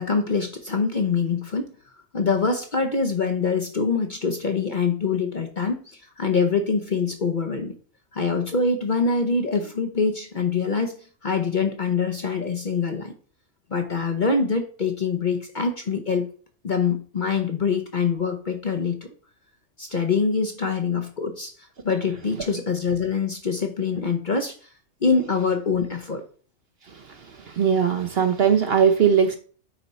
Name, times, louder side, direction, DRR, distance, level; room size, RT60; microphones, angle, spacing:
voice 1, 0.0-1.7 2.1-7.7 8.1-11.0 11.2-13.1 13.7-16.3 16.6-19.1 19.8-21.5 21.8-24.5 25.0-26.2, left 5 dB, 40° left, 5 dB, 0.8 m, -24 dB
voice 2, 27.5-29.4, right 7 dB, 50° right, 7 dB, 0.8 m, -19 dB
9.1 x 4.4 x 4.1 m, 0.42 s
omnidirectional pair, 1.5 m